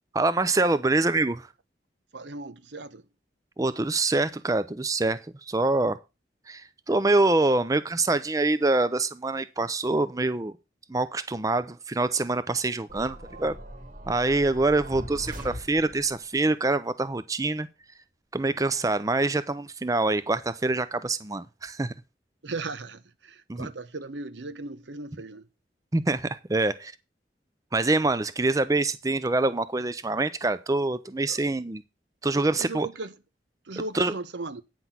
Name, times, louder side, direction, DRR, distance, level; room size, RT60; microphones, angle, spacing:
voice 1, 0.1-1.4 3.6-5.2 5.5-6.0 6.5-10.5 10.9-13.6 14.1-17.7 18.3-21.9 23.5-23.7 25.9-26.9 27.7-31.8 32.2-32.9 33.9-34.1, right 2 dB, 20° right, 0.5 m, -25 dB
voice 2, 2.1-3.1 22.4-25.4 31.2-31.4 32.3-33.1 33.6-34.6, right 3 dB, 85° right, 0.9 m, -37 dB
sound 1, 12.9-16.2, equal, 50° right, 1.9 m, -40 dB
9.4 x 6.0 x 5.9 m
head